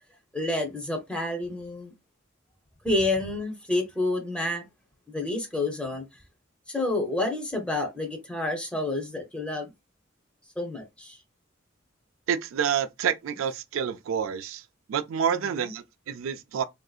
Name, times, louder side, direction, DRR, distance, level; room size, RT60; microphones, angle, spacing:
voice 1, 0.3-1.9 2.8-4.6 5.1-6.0 6.7-9.7 10.6-11.2, left 2 dB, 5° left, 0.6 m, -29 dB
voice 2, 12.3-14.6 14.9-16.6, right 8 dB, 85° right, 0.3 m, -28 dB
3.5 x 2.6 x 2.3 m
head